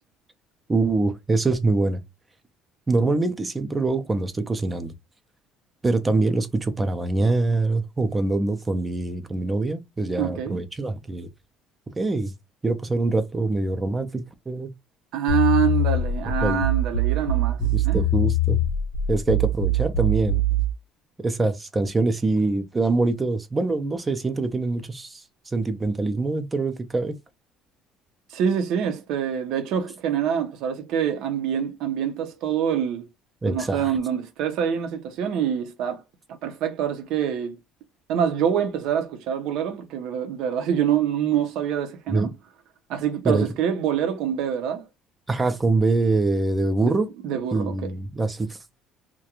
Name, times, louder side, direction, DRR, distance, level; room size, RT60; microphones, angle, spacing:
voice 1, 0.7-2.0 2.9-4.9 5.8-11.3 12.0-12.3 12.6-14.7 16.4-16.6 17.6-18.6 19.1-20.4 21.2-27.2 33.4-33.9 42.1-42.3 43.2-43.5 45.3-47.1 47.5-48.6, right 3 dB, 15° right, 0.4 m, -24 dB
voice 2, 10.2-10.6 15.1-18.1 28.3-33.1 33.5-36.0 36.3-37.6 38.1-42.3 42.9-44.9 46.8-46.9 47.2-47.9, right 9 dB, 70° right, 0.6 m, -25 dB
sound 1, 15.3-20.7, right 1 dB, 85° left, 0.8 m, -23 dB
2.4 x 2.1 x 2.8 m
cardioid pair, 135°, 0 cm